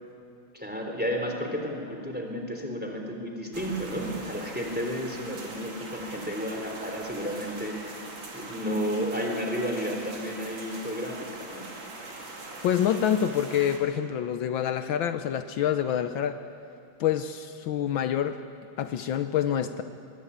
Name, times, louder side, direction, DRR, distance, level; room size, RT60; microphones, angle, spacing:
voice 1, 0.5-8.0 8.3-11.7, equal, 5° right, 2 dB, 3.5 m, -32 dB
sound 1, 3.5-13.8, right 2 dB, 70° right, 3.5 m, -42 dB
voice 2, 12.6-16.4 17.0-18.4 18.8-19.8, left 9 dB, 75° left, 9 dB, 1.5 m, -26 dB
22.5 x 21.5 x 8.6 m, 2.5 s
omnidirectional pair, 2.2 m